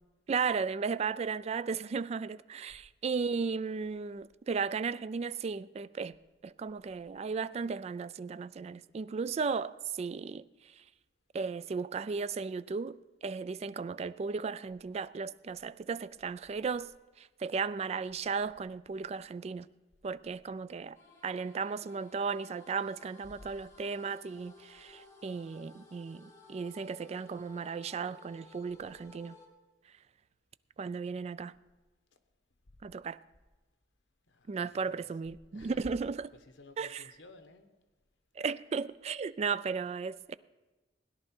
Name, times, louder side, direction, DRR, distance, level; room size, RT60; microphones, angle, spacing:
voice 1, 0.3-6.2 6.4-10.4 11.3-16.9 17.2-19.7 20.0-21.0 21.2-29.3 30.8-31.5 32.8-33.2 34.5-36.3 36.8-37.0 38.4-40.3, right 5 dB, 35° right, 0.3 m, -35 dB
sound 1, 20.9-29.5, left 2 dB, 15° left, 2.1 m, -57 dB
voice 2, 34.3-35.1 35.5-35.9 36.3-37.7, left 2 dB, 85° left, 1.1 m, -54 dB
17.0 x 10.5 x 4.4 m
head